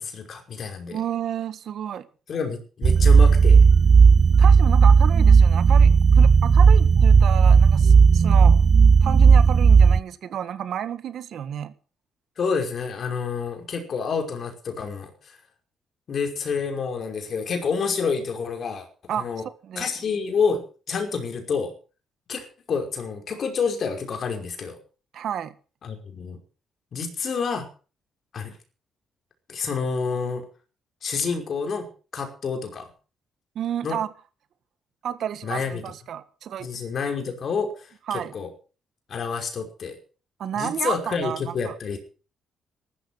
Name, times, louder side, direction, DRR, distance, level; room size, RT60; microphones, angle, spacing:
voice 1, 0.0-1.0 2.3-3.6 12.4-15.1 16.1-18.9 19.1-19.4 19.8-21.7 22.3-24.8 25.8-26.4 26.9-27.7 28.3-28.5 29.5-30.4 31.0-31.9 32.1-32.9 33.8-34.0 35.4-35.8 36.6-38.5 39.1-40.0 40.6-42.0, left 5 dB, 55° left, 5.4 m, -28 dB
voice 2, 0.9-2.1 4.4-8.6 9.0-11.7 19.1-19.9 25.1-25.5 33.5-34.1 35.0-36.7 38.1-38.3 40.4-41.7, right 9 dB, 70° right, 1.7 m, -31 dB
sound 1, 2.8-10.0, right 5 dB, 45° right, 0.7 m, -14 dB
15.0 x 13.0 x 5.9 m
cardioid pair, 90°, 0 cm